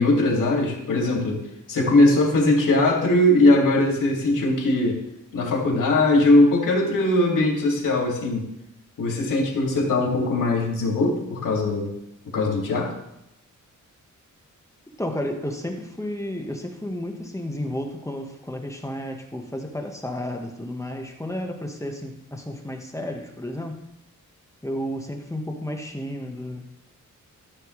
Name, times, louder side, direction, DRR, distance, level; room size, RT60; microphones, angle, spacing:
voice 1, 0.0-1.4 1.7-5.0 5.3-8.5 9.0-11.9 12.3-12.9, left 2 dB, 85° left, -1 dB, 2.4 m, -20 dB
voice 2, 15.0-23.8 24.6-26.7, left 1 dB, 10° left, 2 dB, 1.3 m, -32 dB
13.5 x 6.7 x 3.2 m, 0.83 s
wide cardioid pair, 95°, 32 cm